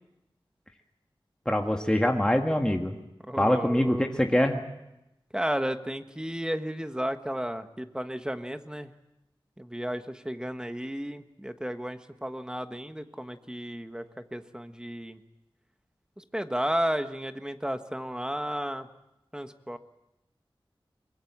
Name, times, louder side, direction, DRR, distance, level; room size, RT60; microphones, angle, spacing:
voice 1, 1.4-3.0 3.4-4.6, left 1 dB, 10° left, 3 dB, 1.6 m, -24 dB
voice 2, 3.3-4.1 5.3-8.9 9.6-15.2 16.2-18.9 19.3-19.8, equal, 10° right, 8 dB, 1.4 m, -33 dB
23.5 x 22.0 x 7.3 m, 0.92 s
wide cardioid pair, 70°, 9 cm